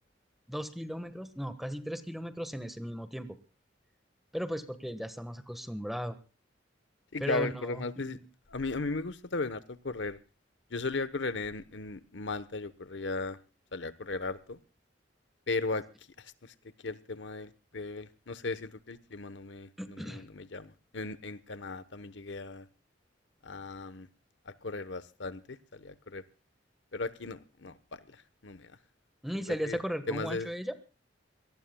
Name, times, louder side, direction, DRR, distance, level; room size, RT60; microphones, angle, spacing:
voice 1, 0.5-3.4 4.3-6.2 7.2-8.2 19.8-20.2 29.2-30.8, equal, ahead, 11 dB, 1.4 m, -36 dB
voice 2, 7.1-8.2 8.5-10.2 10.7-13.4 13.7-14.6 15.5-15.8 16.4-16.5 16.8-22.7 23.4-24.1 24.5-26.2 26.9-28.7 29.5-29.8 30.1-30.5, left 3 dB, 70° left, 15 dB, 1.1 m, -36 dB
25.5 x 19.0 x 2.3 m, 0.33 s
head